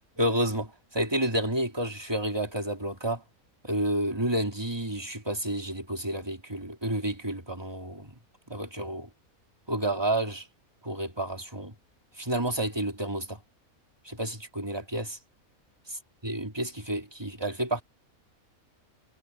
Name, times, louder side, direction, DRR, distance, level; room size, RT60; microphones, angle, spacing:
voice 1, 0.2-3.2 3.6-8.1 8.5-9.1 9.7-10.4 10.8-11.7 12.2-13.4 14.0-15.2 16.2-17.8, right 1 dB, 15° right, 3.3 m, -30 dB
omnidirectional pair, 1.5 m